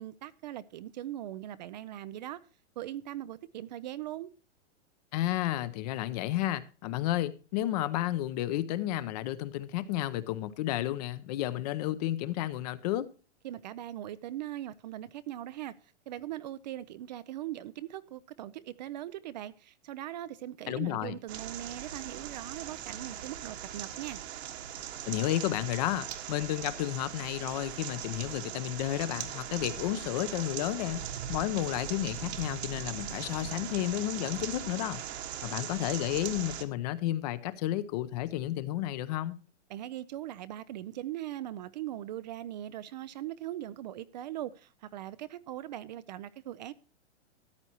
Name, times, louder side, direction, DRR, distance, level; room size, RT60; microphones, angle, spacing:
voice 1, 0.0-2.4 2.8-4.3 13.4-24.2 39.7-46.7, right 13 dB, 40° right, 0.4 m, -40 dB
voice 2, 5.1-13.1 20.7-21.2 25.1-31.0 31.3-35.0 35.4-39.4, left 14 dB, 35° left, 0.7 m, -32 dB
sound 1, 21.3-36.6, right 9 dB, 60° right, 1.6 m, -40 dB
14.0 x 9.8 x 2.9 m
hypercardioid pair, 150°, 36 cm